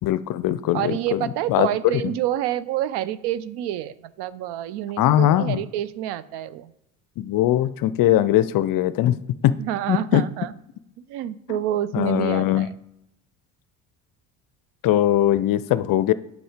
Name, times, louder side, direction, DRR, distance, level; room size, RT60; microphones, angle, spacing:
voice 1, 0.0-2.0 5.0-5.6 7.2-9.2 9.4-9.6 9.9-10.2 11.5-11.6 11.9-12.7 14.8-16.1, left 13 dB, 50° left, 15 dB, 0.5 m, -20 dB
voice 2, 0.7-6.7 9.6-10.5 11.0-12.7, right 12 dB, 60° right, 16 dB, 0.6 m, -28 dB
7.8 x 5.5 x 5.0 m, 0.85 s
hypercardioid pair, 75°, 46 cm